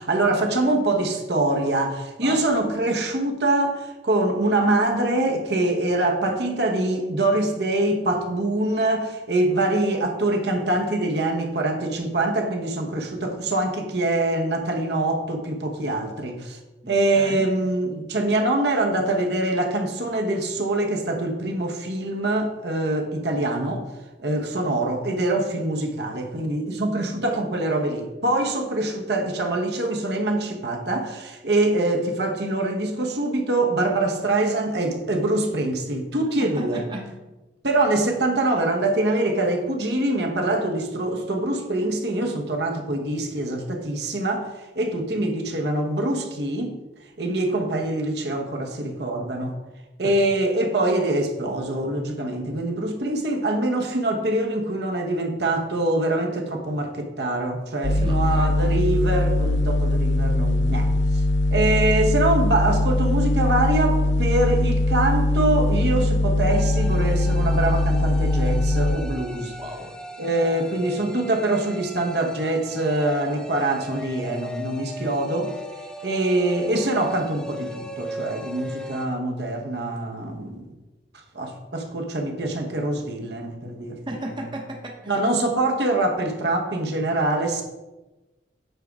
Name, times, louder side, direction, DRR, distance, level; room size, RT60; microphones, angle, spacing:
voice 1, 0.0-16.6 16.9-23.8 24.2-36.8 37.6-44.5 44.7-46.8 47.2-49.5 50.0-61.2 61.5-69.5 70.2-75.5 76.0-80.7 81.3-84.0 85.1-87.6, right 2 dB, 60° right, 3 dB, 1.1 m, -24 dB
voice 2, 16.8-17.5 36.4-37.1 50.0-50.1 57.9-58.5 69.6-70.0 84.1-85.2, right 1 dB, 25° right, 1 dB, 1.0 m, -35 dB
sound 1, 57.8-69.0, left 1 dB, 75° left, 0.6 m, -21 dB
sound 2, 66.5-79.1, equal, 5° left, 0.5 m, -38 dB
9.0 x 3.7 x 6.0 m, 1.1 s
head